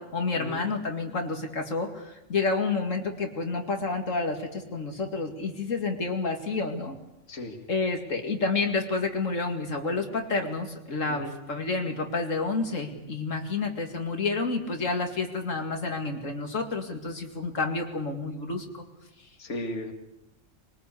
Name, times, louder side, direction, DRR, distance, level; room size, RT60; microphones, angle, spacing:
voice 1, 0.0-7.0 7.7-18.8, left 3 dB, 85° left, 3 dB, 2.6 m, -29 dB
voice 2, 7.3-7.6 11.1-11.3 19.4-19.9, left 1 dB, 70° left, 4 dB, 2.5 m, -35 dB
23.5 x 19.5 x 8.5 m, 0.90 s
omnidirectional pair, 1.3 m